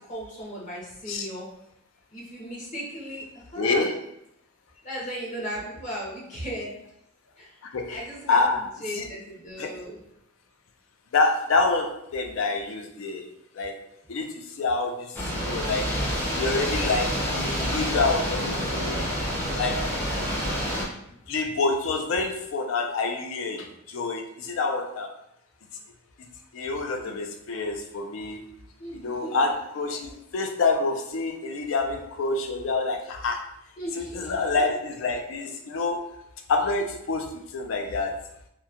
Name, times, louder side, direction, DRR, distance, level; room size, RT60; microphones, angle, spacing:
voice 1, 0.0-1.5 2.1-3.9 4.8-6.8 7.4-7.6 7.9-10.0 20.0-20.6 27.0-27.2 28.8-29.5 33.8-34.4, equal, 40° left, -5 dB, 0.9 m, -37 dB
voice 2, 3.6-3.9 7.6-8.0 8.3-8.7 8.9-9.1 9.6-9.7 11.1-13.3 13.5-13.7 14.1-15.9 16.3-19.0 19.6-19.9 21.3-25.1 26.5-28.4 28.9-33.5 34.0-36.1 36.5-38.2, left 3 dB, 80° left, 4 dB, 0.4 m, -27 dB
sound 1, 15.1-20.9, equal, 10° left, 0.5 m, -28 dB
2.9 x 2.2 x 2.4 m, 0.78 s
head